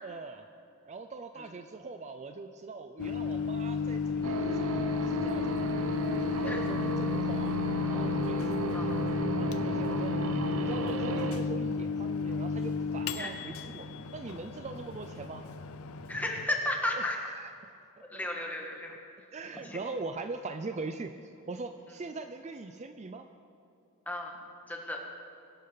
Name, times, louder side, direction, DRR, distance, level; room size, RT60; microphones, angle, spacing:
voice 1, 0.0-0.5 0.9-5.7 6.4-7.6 7.9-10.1 10.5-13.9 14.1-15.4 16.9-18.4 19.3-23.3, right 3 dB, 30° right, 8 dB, 0.4 m, -42 dB
Microwave oven, 3.0-16.5, left 5 dB, 85° left, 0.6 m, -33 dB
sound 1, 4.2-11.4, right 2 dB, 70° right, 0.9 m, -34 dB
voice 2, 16.1-17.2 18.0-18.9 19.5-19.8 24.0-24.3 24.7-25.0, left 1 dB, 10° left, 0 dB, 1.7 m, -34 dB
22.5 x 12.0 x 4.0 m, 2.5 s
head